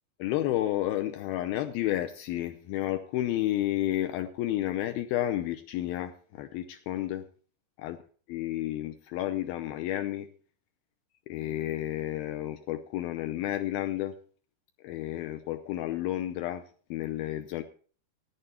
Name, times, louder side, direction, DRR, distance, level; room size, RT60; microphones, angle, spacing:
voice 1, 0.2-7.3 7.8-8.0 8.3-10.3 11.3-14.1 14.8-16.6 16.9-17.6, left 14 dB, 85° left, 8 dB, 2.1 m, -31 dB
18.0 x 9.1 x 4.3 m, 0.42 s
omnidirectional pair, 5.2 m